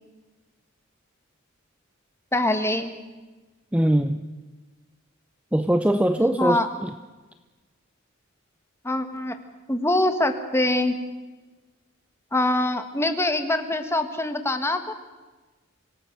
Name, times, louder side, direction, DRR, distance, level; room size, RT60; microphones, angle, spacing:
voice 1, 2.3-2.9 6.4-6.7 8.8-9.4 9.7-11.0 12.3-14.9, left 1 dB, 10° left, 7 dB, 1.6 m, -24 dB
voice 2, 3.7-4.2 5.5-6.9, right 1 dB, 5° right, 9 dB, 0.6 m, -22 dB
25.5 x 18.0 x 6.7 m, 1.2 s
head